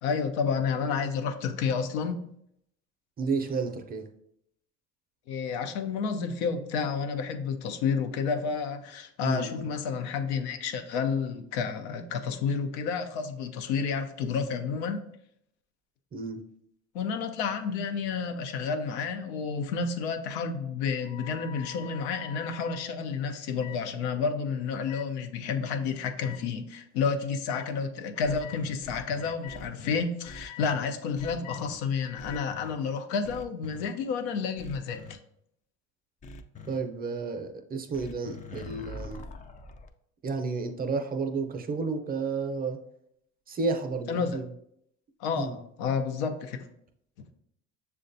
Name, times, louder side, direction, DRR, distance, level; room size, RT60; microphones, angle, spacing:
voice 1, 0.0-2.2 5.3-15.0 16.9-35.2 44.1-44.4 45.2-46.7, left 5 dB, 85° left, 6 dB, 0.5 m, -30 dB
voice 2, 3.2-4.0 9.2-9.7 16.1-16.4 36.7-39.2 40.2-42.8 43.5-44.5 45.4-45.6, right 4 dB, 25° right, 5 dB, 0.5 m, -31 dB
sound 1, 21.0-22.8 23.6-23.8 24.9-25.1 26.2-26.4 27.5-27.7 28.1-28.6 29.2-29.6 30.2-30.7 31.2-31.6 32.0-32.5, left 11 dB, 60° left, 1.0 m, -46 dB
sound 2, 28.2-30.8 31.1-31.7 32.2-32.7 33.2-33.9 34.6-35.1 36.2-36.8 37.9-39.9, left 3 dB, 25° left, 0.3 m, -44 dB
6.5 x 2.2 x 2.6 m, 0.73 s
supercardioid pair, 80°, 33 cm